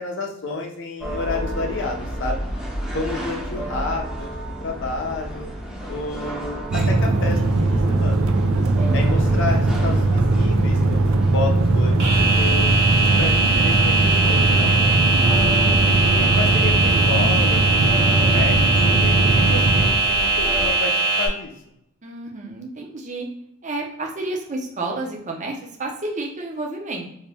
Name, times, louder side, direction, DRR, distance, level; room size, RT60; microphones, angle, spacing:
voice 1, 0.0-2.4 2.9-4.3 4.6-5.5 5.8-8.3 8.9-14.9 15.9-18.6 18.8-21.5, left 3 dB, 60° left, 2 dB, 0.5 m, -30 dB
sound 1, 1.0-20.7, equal, 5° right, 0.7 m, -31 dB
sound 2, 6.7-19.9, right 2 dB, 80° right, 0.4 m, -19 dB
voice 2, 8.5-9.0 15.1-15.5 22.0-23.3 23.6-27.1, right 2 dB, 35° right, 0 dB, 0.7 m, -31 dB
sound 3, 12.0-21.3, right 3 dB, 60° right, 1.1 m, -21 dB
2.9 x 2.7 x 3.4 m, 0.76 s
head